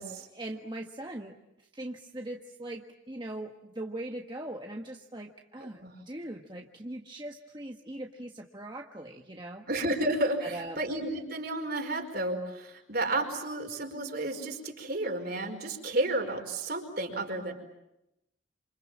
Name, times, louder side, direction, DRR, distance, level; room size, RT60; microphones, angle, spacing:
voice 1, 0.3-5.8 6.1-9.7 10.4-10.8, right 1 dB, 25° right, 2 dB, 1.5 m, -40 dB
voice 2, 5.6-5.9 9.7-17.5, right 2 dB, 50° right, 4 dB, 5.1 m, -32 dB
28.5 x 27.5 x 7.5 m, 0.86 s
head